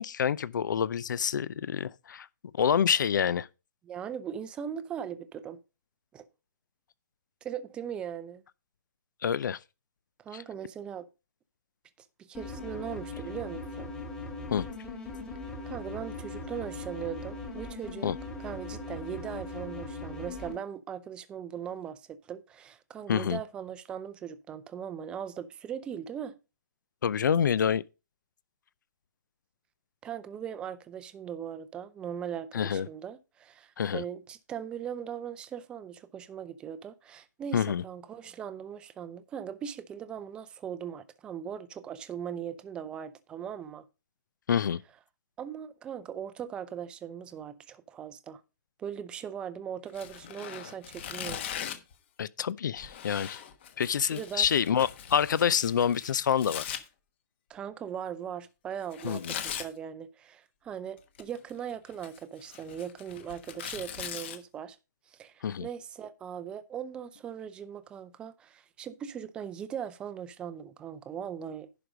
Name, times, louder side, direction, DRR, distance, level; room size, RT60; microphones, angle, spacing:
voice 1, 0.0-2.3 2.6-3.5 9.2-9.6 10.3-10.4 14.5-14.7 18.0-18.2 23.1-23.4 27.0-27.8 32.5-32.9 33.8-34.0 37.5-37.8 44.5-44.8 52.2-53.4 53.8-56.7 59.0-59.3 65.4-65.7, left 8 dB, 80° left, 0.5 m, -27 dB
voice 2, 3.8-5.6 6.1-6.3 7.4-8.4 10.2-11.1 12.3-13.9 15.7-18.1 18.4-26.4 30.0-43.8 45.4-48.4 48.8-51.4 54.1-54.5 57.5-64.8 65.1-71.9, right 8 dB, 10° right, 0.5 m, -39 dB
sound 1, 12.3-20.5, left 3 dB, 5° left, 1.7 m, -39 dB
Tearing, 49.9-51.9 52.8-56.8 58.9-59.7 61.0-61.5 61.9-64.4, left 9 dB, 35° left, 1.2 m, -40 dB
11.0 x 5.1 x 5.1 m
hypercardioid pair, 165°, 10 cm